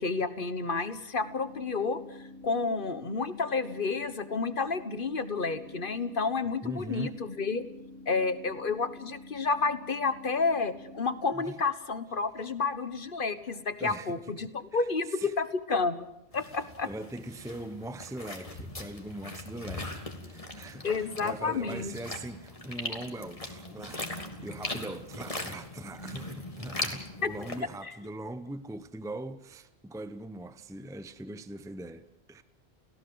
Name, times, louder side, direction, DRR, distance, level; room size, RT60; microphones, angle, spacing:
voice 1, 0.0-2.0 2.4-7.6 8.1-16.0 16.3-16.9 20.8-21.9 27.2-27.3 27.8-27.9, left 4 dB, 55° left, 1.5 m, -30 dB
sound 1, 1.2-11.2, left 2 dB, 85° right, 2.2 m, -48 dB
voice 2, 6.6-7.2 11.3-11.6 13.8-15.3 16.8-24.1 24.4-32.4, right 1 dB, 5° right, 0.8 m, -41 dB
sound 2, 16.3-27.6, left 2 dB, 35° left, 2.6 m, -40 dB
29.5 x 17.0 x 7.9 m
omnidirectional pair, 1.0 m